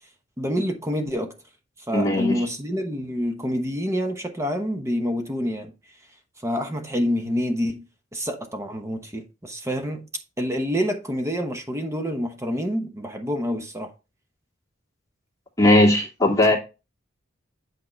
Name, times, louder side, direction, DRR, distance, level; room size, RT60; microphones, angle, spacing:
voice 1, 0.4-1.4 1.9-5.7 6.4-10.1 10.4-13.9, equal, 15° right, 0.9 m, -27 dB
voice 2, 1.9-2.4 15.6-16.6, left 1 dB, 20° left, 2.3 m, -18 dB
8.5 x 5.3 x 3.2 m
head